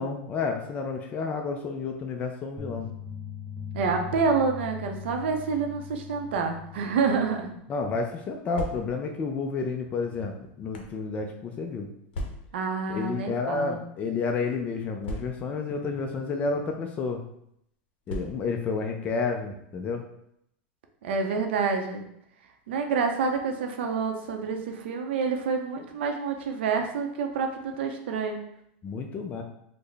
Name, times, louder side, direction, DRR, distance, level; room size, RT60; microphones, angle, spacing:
voice 1, 0.0-2.9 7.7-11.9 12.9-17.2 18.1-20.0 28.8-29.4, left 4 dB, 25° left, 3 dB, 0.4 m, -30 dB
sound 1, 2.6-7.6, left 8 dB, 15° right, 1.0 m, -40 dB
voice 2, 3.7-7.5 12.5-13.8 21.0-22.0 22.7-28.4, right 5 dB, 80° right, 4 dB, 0.6 m, -28 dB
sound 2, 8.4-9.2 10.0-11.0 12.1-12.7 13.6-13.8 14.0-14.1 15.0-15.7 16.6-16.8 18.1-18.7, equal, 85° left, 0.6 m, -37 dB
3.8 x 2.1 x 3.3 m, 0.74 s
supercardioid pair, 140°, 6 cm